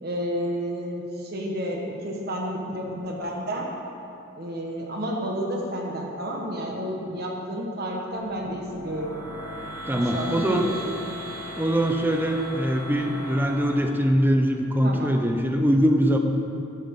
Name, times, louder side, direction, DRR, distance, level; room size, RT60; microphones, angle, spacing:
voice 1, 0.0-3.7 4.3-9.1 9.9-10.7 14.8-15.1, equal, 50° right, 0 dB, 1.2 m, -30 dB
sound 1, 8.1-13.8, equal, 75° right, 2.6 m, -37 dB
voice 2, 9.9-10.7 11.6-16.2, equal, 10° right, 4 dB, 0.7 m, -22 dB
14.0 x 10.5 x 3.7 m, 2.7 s
head